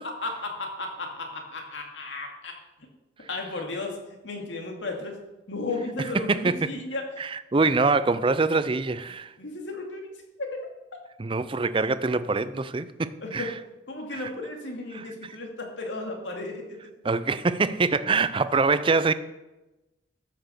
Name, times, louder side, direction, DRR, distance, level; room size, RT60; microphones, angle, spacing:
voice 1, 0.2-2.5 3.3-4.0 4.2-5.2 5.5-7.0 9.4-10.1 10.4-10.5 13.2-13.5 13.9-16.8, left 2 dB, 80° left, 2.3 m, -34 dB
voice 2, 6.1-6.7 7.2-9.3 11.2-13.5 14.1-14.2 14.9-15.0 17.0-19.1, right 4 dB, 30° right, 0.5 m, -24 dB
13.0 x 6.1 x 6.8 m
head